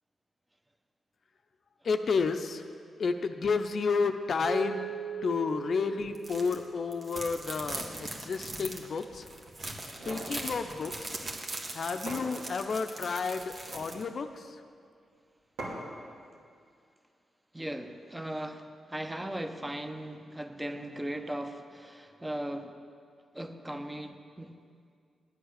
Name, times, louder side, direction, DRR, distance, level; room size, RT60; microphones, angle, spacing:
voice 1, 1.8-2.6 3.0-4.9 5.2-9.3 10.1-11.2 11.7-14.6, left 5 dB, 60° left, 7 dB, 0.5 m, -31 dB
Mallet percussion, 4.4-7.3, right 5 dB, 65° right, 1.9 m, -39 dB
sound 1, 6.1-6.6 6.9-14.0, right 2 dB, 45° right, 1.5 m, -40 dB
sound 2, 10.0-10.4 11.6-11.7 12.1-12.8 13.5-14.0 15.6-16.0, right 1 dB, 85° right, 2.5 m, -41 dB
voice 2, 17.5-22.8 23.3-24.5, right 1 dB, 15° right, 7 dB, 0.9 m, -38 dB
10.0 x 7.9 x 6.5 m, 2.3 s
supercardioid pair, 45°, 0 cm